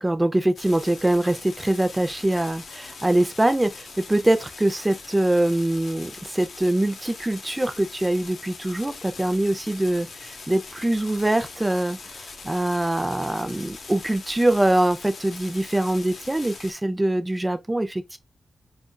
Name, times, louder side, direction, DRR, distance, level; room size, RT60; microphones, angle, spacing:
voice 1, 0.0-18.2, right 1 dB, 15° right, 0.6 m, -23 dB
sound 1, 0.6-16.7, left 4 dB, 75° left, 0.7 m, -42 dB
4.3 x 2.5 x 2.2 m
cardioid pair, 65°, 0 cm